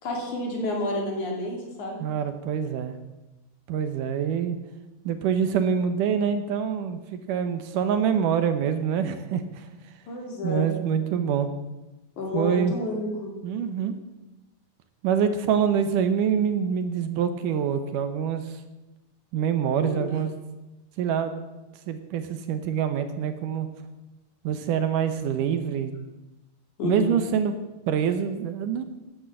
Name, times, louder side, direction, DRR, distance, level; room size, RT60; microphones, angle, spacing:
voice 1, 0.0-2.0 10.1-10.7 12.2-13.3 19.8-20.1 26.8-27.1, left 1 dB, 60° left, 0 dB, 4.3 m, -30 dB
voice 2, 2.0-2.9 3.7-4.6 5.0-9.7 10.4-11.5 12.3-12.7 13.4-13.9 15.0-18.6 19.3-20.3 21.0-21.3 21.9-23.7 24.4-25.9 26.8-27.5 27.9-28.9, right 7 dB, 75° right, 9 dB, 2.4 m, -25 dB
12.5 x 11.0 x 7.7 m, 1.0 s
omnidirectional pair, 4.0 m